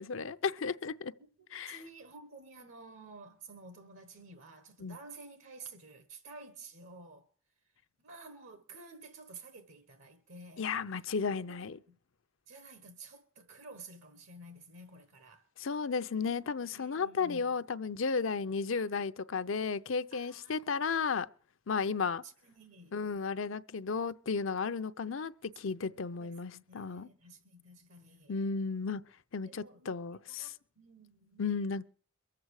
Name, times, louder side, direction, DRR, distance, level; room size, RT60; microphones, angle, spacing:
voice 1, 0.0-1.1 1.5-1.8 4.8-5.0 10.6-11.8 15.6-21.3 21.7-22.2 22.9-27.1 28.3-29.0 29.3-30.5 31.4-31.9, left 5 dB, 75° left, 0.6 m, -34 dB
voice 2, 1.2-7.3 8.0-11.1 11.4-12.0 12.5-15.4 16.6-17.6 20.1-20.6 22.2-23.0 25.9-28.4 29.4-31.4, right 3 dB, 75° right, 1.4 m, -52 dB
23.0 x 7.8 x 4.8 m
head